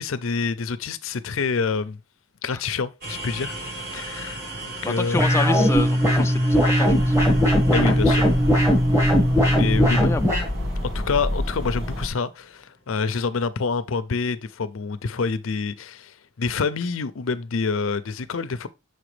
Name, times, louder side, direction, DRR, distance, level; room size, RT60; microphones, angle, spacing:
voice 1, 0.0-2.0 2.4-3.6 3.9-5.2 7.7-8.3 9.5-10.1 10.9-18.7, left 4 dB, 85° left, 0.6 m, -27 dB
sound 1, 3.0-12.8, right 1 dB, 50° right, 1.5 m, -39 dB
voice 2, 4.8-7.1 9.9-10.2, left 2 dB, 15° left, 0.3 m, -28 dB
sound 2, 5.1-10.5, equal, 15° right, 1.6 m, -19 dB
sound 3, 6.9-12.1, left 1 dB, 80° right, 1.9 m, -29 dB
6.5 x 5.0 x 3.2 m
head